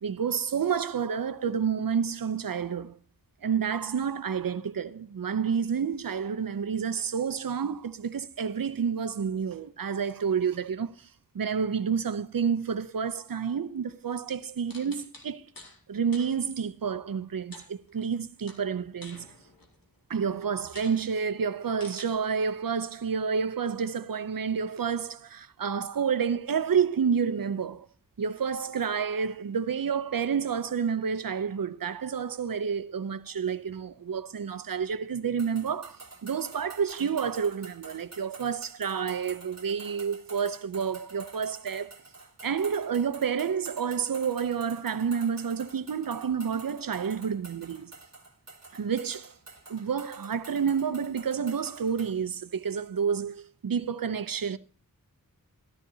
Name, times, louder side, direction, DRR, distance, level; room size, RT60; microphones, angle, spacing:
voice 1, 0.0-3.0 3.4-11.1 11.3-15.5 15.9-19.3 20.1-27.9 28.2-41.9 42.4-47.9 48.7-49.3 49.7-54.6, right 6 dB, 75° right, 0.7 m, -29 dB
sound 1, 14.7-15.8 16.1-16.3 17.5-18.2 18.5-19.8 20.3-20.4 20.7-21.0 21.8-22.0, left 2 dB, 75° left, 2.2 m, -48 dB
sound 2, 35.4-52.2, right 3 dB, 50° right, 1.6 m, -49 dB
13.5 x 12.5 x 2.8 m
wide cardioid pair, 60°, 35 cm